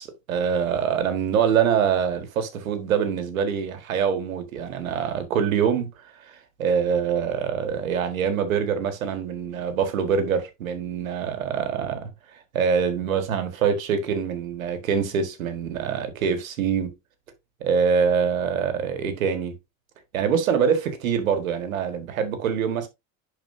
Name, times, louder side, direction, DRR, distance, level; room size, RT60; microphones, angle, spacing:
voice 1, 0.0-5.9 6.2-12.1 12.5-16.9 17.6-19.5 20.1-22.9, right 7 dB, 90° right, 1.7 m, -24 dB
10.5 x 4.4 x 2.6 m
hypercardioid pair, 85°, 40 cm